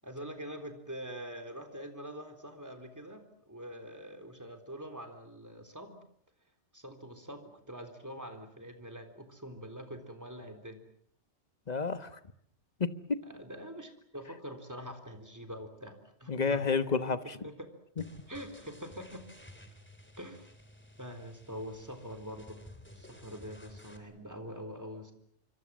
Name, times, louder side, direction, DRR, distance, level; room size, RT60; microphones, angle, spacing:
voice 1, 0.0-6.0 6.7-10.9 13.2-16.7 17.1-17.7 18.3-19.2 20.2-20.5 21.0-22.6 22.9-25.1, equal, 15° right, 5 dB, 3.7 m, -44 dB
voice 2, 11.7-12.2 12.8-13.2 16.3-17.4, left 4 dB, 35° left, 12 dB, 1.4 m, -30 dB
sound 1, 18.0-24.0, left 1 dB, 10° left, 3.2 m, -54 dB
27.0 x 24.5 x 7.5 m, 0.66 s
omnidirectional pair, 1.2 m